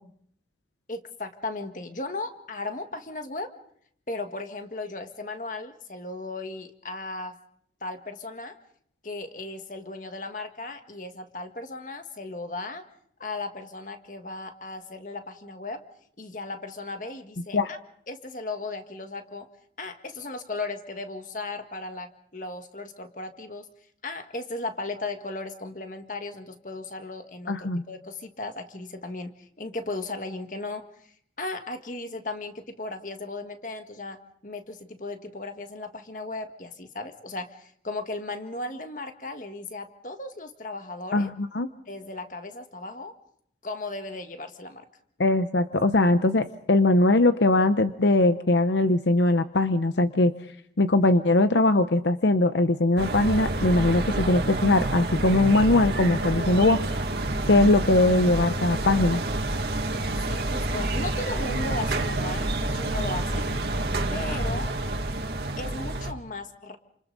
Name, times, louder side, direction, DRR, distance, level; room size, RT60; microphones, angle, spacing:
voice 1, 0.9-3.5 4.1-7.4 7.8-8.6 9.0-12.8 13.2-15.8 16.2-17.8 18.1-19.5 19.8-23.7 24.0-30.8 31.4-41.3 41.9-43.1 43.6-44.9 60.3-63.6 64.1-64.7 65.6-66.8, left 2 dB, 45° left, 6 dB, 1.8 m, -36 dB
voice 2, 27.5-27.8 41.1-41.7 45.2-50.3 50.8-56.8 57.5-59.2, left 2 dB, 80° left, 10 dB, 0.8 m, -21 dB
sound 1, 53.0-66.1, right 2 dB, 65° right, 2.1 m, -28 dB
29.5 x 27.5 x 4.0 m, 0.66 s
head